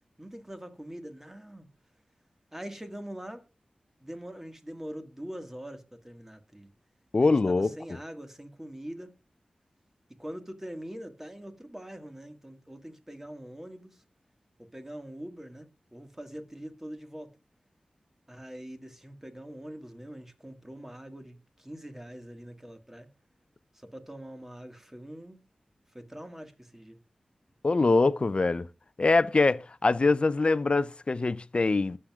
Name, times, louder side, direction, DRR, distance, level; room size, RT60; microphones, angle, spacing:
voice 1, 0.2-1.7 2.5-3.4 4.0-6.7 7.2-9.1 10.2-14.0 14.6-17.3 18.3-23.1 23.7-25.4 25.9-27.0, equal, 15° right, 1.7 m, -43 dB
voice 2, 7.1-7.7 27.6-28.7 29.0-32.0, left 3 dB, 50° left, 0.5 m, -23 dB
21.5 x 7.6 x 2.4 m
cardioid pair, 50°, 2 cm